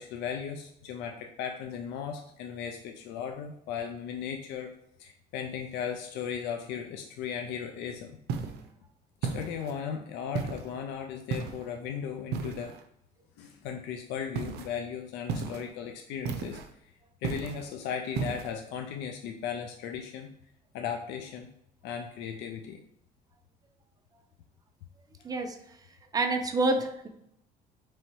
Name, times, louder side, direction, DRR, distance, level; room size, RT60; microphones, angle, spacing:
voice 1, 0.0-4.7 5.0-8.2 9.3-12.7 13.4-16.6 17.2-20.3 20.7-21.5 21.8-22.8, left 7 dB, 85° left, 4 dB, 0.4 m, -36 dB
sound 1, 8.3-8.7 9.2-9.8 10.3-10.7 11.3-11.7 12.3-12.8 14.3-14.7 15.3-15.7 16.2-16.7 17.2-17.7 18.1-18.5, right 5 dB, 75° right, 0.5 m, -34 dB
voice 2, 25.2-25.8 26.1-27.1, right 2 dB, 20° right, 5 dB, 0.5 m, -28 dB
3.1 x 2.8 x 4.5 m, 0.75 s
cardioid pair, 110°, 17 cm